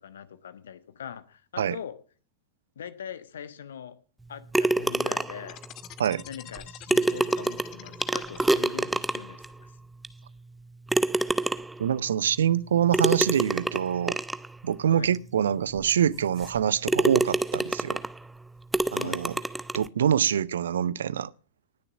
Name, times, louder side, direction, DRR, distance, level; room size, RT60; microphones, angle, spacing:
voice 1, 0.0-1.9 2.7-4.0 4.3-5.6 6.3-9.7 14.9-15.1 18.9-19.2, left 8 dB, 65° left, 1.2 m, -41 dB
sound 1, 4.5-5.5 6.5-6.6 6.9-9.4 10.0-10.1 10.9-11.8 12.9-14.5 15.1-15.2 15.8-15.9 16.4-16.6 16.9-18.2 18.7-19.9, right 2 dB, 5° right, 0.7 m, -26 dB
sound 2, 5.5-9.0, left 11 dB, 35° left, 0.9 m, -46 dB
voice 2, 11.8-14.2 14.6-18.0 18.9-19.3 19.7-21.3, right 9 dB, 65° right, 0.6 m, -25 dB
19.0 x 6.9 x 7.2 m
figure-of-eight pair, 90°, 0 cm